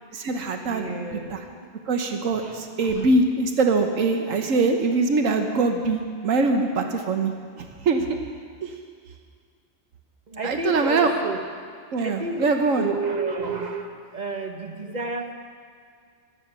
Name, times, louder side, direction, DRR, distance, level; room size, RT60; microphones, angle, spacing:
voice 1, 0.1-1.0 1.3-1.4 1.9-7.3 7.9-8.2 10.4-11.1 11.9-12.9, right 3 dB, 90° right, 4 dB, 1.4 m, -23 dB
voice 2, 0.7-1.6 2.1-3.2 10.3-11.5 12.0-12.5 12.8-15.3, right 3 dB, 35° right, 3 dB, 1.4 m, -31 dB
16.0 x 12.5 x 6.1 m, 2.1 s
omnidirectional pair, 1.3 m